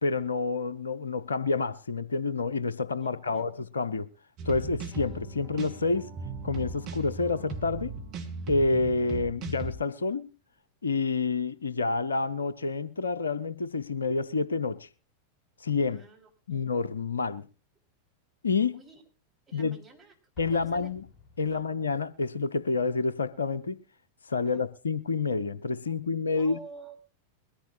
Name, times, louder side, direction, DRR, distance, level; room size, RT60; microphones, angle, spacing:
voice 1, 0.0-4.1 4.4-6.1 6.4-7.9 8.5-10.3 10.8-14.9 15.6-16.0 16.5-17.5 18.4-18.8 19.5-19.8 20.4-21.0 21.4-23.8 24.3-26.6, left 4 dB, 75° left, 0.6 m, -28 dB
voice 2, 3.0-3.7 15.9-16.6 18.7-19.0 19.5-20.1 20.5-20.9 21.4-21.7 24.4-24.7 26.3-27.0, right 4 dB, 10° right, 4.3 m, -50 dB
sound 1, 4.4-9.7, right 4 dB, 40° right, 2.6 m, -38 dB
Explosion, 20.3-22.1, left 4 dB, 25° left, 3.2 m, -50 dB
22.0 x 14.5 x 2.5 m
figure-of-eight pair, 90°, 0 cm